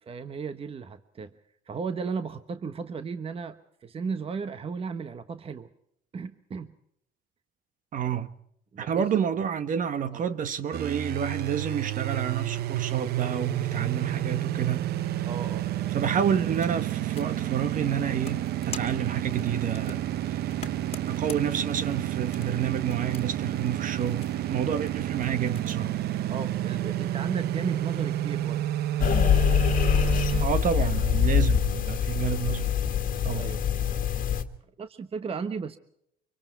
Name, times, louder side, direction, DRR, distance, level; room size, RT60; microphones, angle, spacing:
voice 1, 0.0-1.3 1.7-5.7 6.1-6.7 8.7-9.1 10.1-10.2 15.2-15.7 26.3-28.7 31.2-31.4 33.3-33.6 34.8-35.8, right 5 dB, 35° right, 1.2 m, -35 dB
voice 2, 7.9-8.3 8.8-14.9 15.9-20.0 20.3-20.4 21.1-25.9 30.4-32.7 33.2-33.5, right 8 dB, 50° right, 1.4 m, -29 dB
sound 1, 10.7-30.5, right 12 dB, 70° right, 0.8 m, -30 dB
sound 2, 16.2-25.8, left 6 dB, 35° left, 2.0 m, -47 dB
sound 3, 29.0-34.4, left 9 dB, 55° left, 1.8 m, -24 dB
25.5 x 24.0 x 4.6 m
cardioid pair, 110°, 17 cm